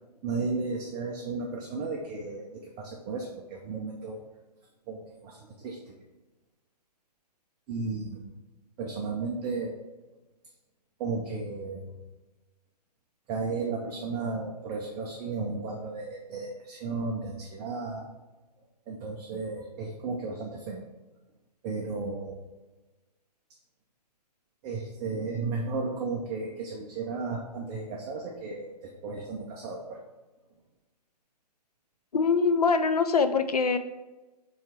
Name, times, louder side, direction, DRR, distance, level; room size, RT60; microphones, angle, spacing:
voice 1, 0.2-4.2 4.9-6.0 7.7-8.3 8.8-9.8 11.0-12.0 13.3-18.1 18.9-20.8 21.6-22.4 24.6-30.0, right 4 dB, 15° right, -1 dB, 0.4 m, -34 dB
voice 2, 32.1-33.8, left 5 dB, 65° left, 9 dB, 0.6 m, -23 dB
7.1 x 3.1 x 4.9 m, 1.1 s
figure-of-eight pair, 125°, 21 cm